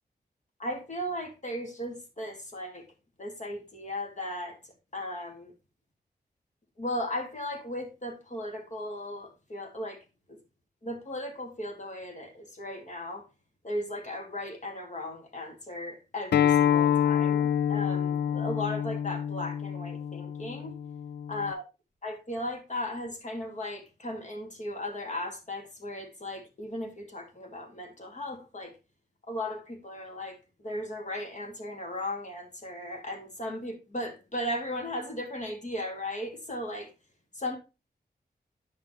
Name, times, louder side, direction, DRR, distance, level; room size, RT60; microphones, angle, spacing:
voice 1, 0.6-2.8 3.2-5.5 6.8-10.4 10.8-13.3 13.6-20.8 21.3-21.6 22.0-28.7 29.3-36.9 37.3-37.6, left 1 dB, 45° left, 2.5 m, -36 dB
Acoustic guitar, 16.3-21.5, left 9 dB, 90° left, 0.5 m, -27 dB
9.5 x 5.9 x 3.3 m
wide cardioid pair, 80°, 17 cm